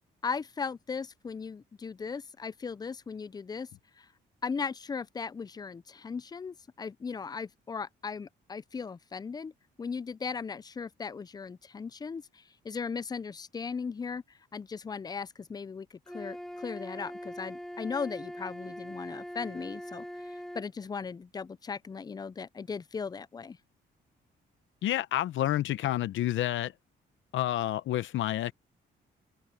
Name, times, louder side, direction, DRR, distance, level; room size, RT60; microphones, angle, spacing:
voice 1, 0.2-3.7 4.0-4.1 4.4-9.5 9.8-14.2 14.5-15.9 16.1-23.6, left 5 dB, 20° left, 0.4 m, -37 dB
Wind instrument woodwind instrument, 16.1-20.7, equal, ahead, 4.5 m, -42 dB
voice 2, 24.8-26.7 27.3-28.5, left 13 dB, 75° left, 0.8 m, -29 dB
cardioid pair, 90°, 20 cm